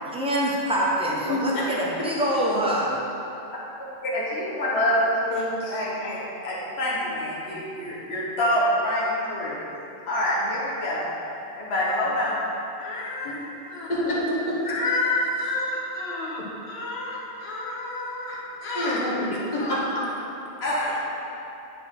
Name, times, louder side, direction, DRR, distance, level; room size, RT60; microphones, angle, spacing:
voice 1, 0.1-3.0, right 1 dB, 5° right, -5 dB, 1.1 m, -25 dB
voice 2, 1.3-1.6 5.3-5.7 13.2-13.4 13.9-14.6 18.7-20.1, left 1 dB, 45° left, -7 dB, 1.5 m, -27 dB
voice 3, 4.0-5.0 5.7-9.6 10.1-11.0 11.5-12.4 12.8-13.3 13.7-14.0 14.6-16.4 16.7-19.0 19.6-19.7 20.6-21.0, left 1 dB, 75° left, -6 dB, 1.5 m, -27 dB
10.0 x 4.8 x 3.7 m, 2.9 s
omnidirectional pair, 1.1 m